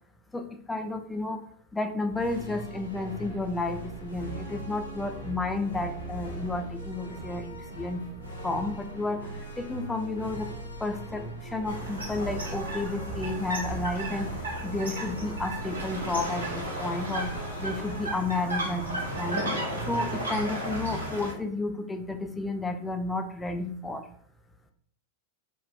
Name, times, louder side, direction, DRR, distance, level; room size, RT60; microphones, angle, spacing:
voice 1, 0.3-1.5 1.7-8.1 8.4-10.5 10.8-19.5 19.9-24.1, left 2 dB, 10° left, 5 dB, 0.3 m, -32 dB
sound 1, 2.1-19.5, right 1 dB, 85° left, 0.7 m, -40 dB
sound 2, 11.7-21.3, right 1 dB, 80° right, 0.8 m, -34 dB
3.2 x 2.2 x 2.5 m, 0.64 s
figure-of-eight pair, 90°, 0 cm